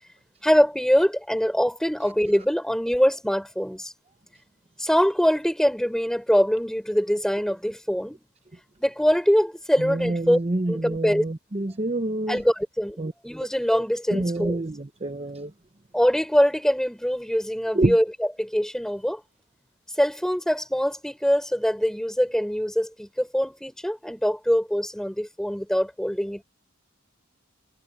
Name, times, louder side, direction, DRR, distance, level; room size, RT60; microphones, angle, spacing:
voice 1, 0.4-3.9 4.8-8.2 8.8-10.4 10.7-11.2 12.3-14.6 15.9-18.0 18.4-19.2 20.0-26.4, equal, 5° left, 6.0 m, -23 dB
voice 2, 9.8-12.4 13.0-13.1 14.1-15.5 17.7-18.0, right 2 dB, 30° right, 0.9 m, -27 dB
head